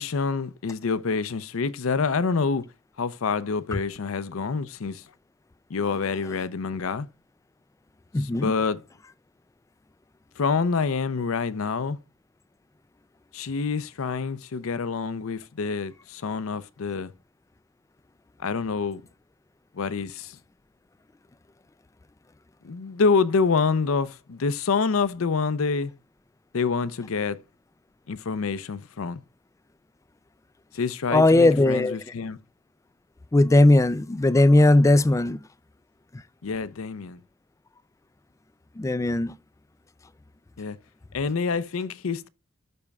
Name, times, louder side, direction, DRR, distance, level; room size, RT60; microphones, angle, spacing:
voice 1, 0.0-2.7 3.0-5.0 5.7-7.1 8.2-8.8 10.4-12.0 13.3-17.1 18.4-19.0 19.7-20.4 22.6-25.9 26.5-27.4 28.1-29.2 30.7-32.4 36.4-37.2 40.6-40.8 41.1-42.3, left 5 dB, 75° left, 0.5 m, -27 dB
voice 2, 8.1-8.5 31.1-32.1 33.3-35.4 36.1-36.2 38.8-39.4, left 2 dB, 15° left, 0.3 m, -18 dB
12.0 x 4.3 x 2.3 m
head